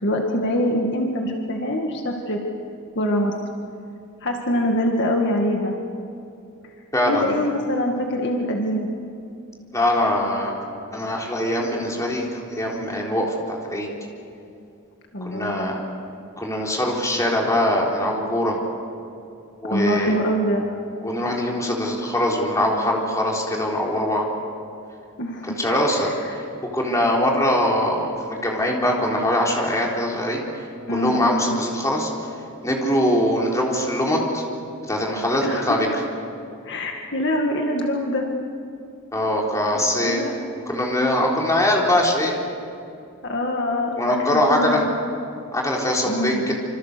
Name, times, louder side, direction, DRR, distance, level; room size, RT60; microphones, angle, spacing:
voice 1, 0.0-2.4 3.0-3.3 4.2-5.7 7.1-8.9 15.1-15.7 19.7-20.7 25.2-25.6 25.9-26.3 30.9-31.5 35.4-35.7 36.6-38.3 40.0-40.3 43.2-44.9 46.0-46.5, equal, 55° left, 1 dB, 2.0 m, -24 dB
voice 2, 6.9-7.4 9.7-10.5 10.9-13.9 15.2-15.8 16.4-18.6 19.6-20.2 21.0-24.2 25.6-26.4 26.7-30.4 30.9-32.1 32.6-34.4 34.9-35.9 39.1-40.2 40.7-42.4 44.0-44.8 45.5-46.5, left 1 dB, 15° left, -2 dB, 3.8 m, -22 dB
27.0 x 26.0 x 6.9 m, 2.6 s
head